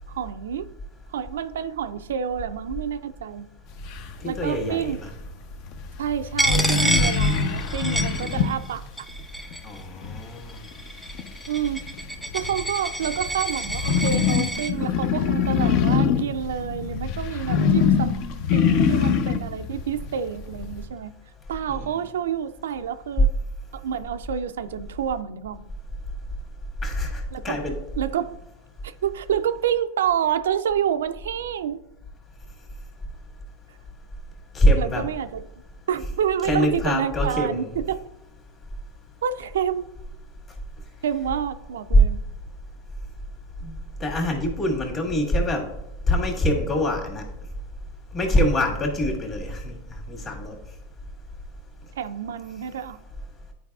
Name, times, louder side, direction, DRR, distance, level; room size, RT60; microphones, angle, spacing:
voice 1, 0.1-0.7 1.1-3.5 4.2-5.0 6.0-8.8 11.5-11.9 12.3-18.2 18.5-21.1 21.5-23.3 23.7-25.7 27.3-27.6 28.0-28.4 28.8-31.8 34.8-35.5 35.9-38.1 39.2-39.9 41.0-42.2 52.0-53.0, right 8 dB, 85° right, 0.3 m, -28 dB
sound 1, 3.8-20.8, left 7 dB, 55° left, 0.6 m, -25 dB
voice 2, 4.2-5.1 9.6-10.6 21.7-21.9 26.8-27.8 34.5-35.1 36.4-37.7 43.6-43.7 44.0-45.7 46.1-47.2 48.1-49.7 50.1-50.6, left 1 dB, 30° left, 1.8 m, -24 dB
Coin (dropping), 6.4-8.7 9.0-9.8 10.5-14.7, right 1 dB, ahead, 0.5 m, -29 dB
9.9 x 4.6 x 2.4 m
hypercardioid pair, 110°, 0 cm